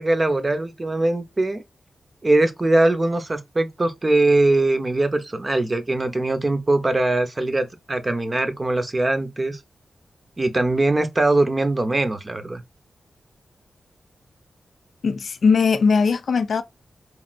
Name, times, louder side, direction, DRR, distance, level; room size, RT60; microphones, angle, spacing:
voice 1, 0.0-1.6 2.2-9.6 10.4-12.6, right 2 dB, 30° right, 0.6 m, -21 dB
voice 2, 15.0-16.6, left 5 dB, 70° left, 0.4 m, -19 dB
3.0 x 2.6 x 2.4 m
wide cardioid pair, 95°, 0 cm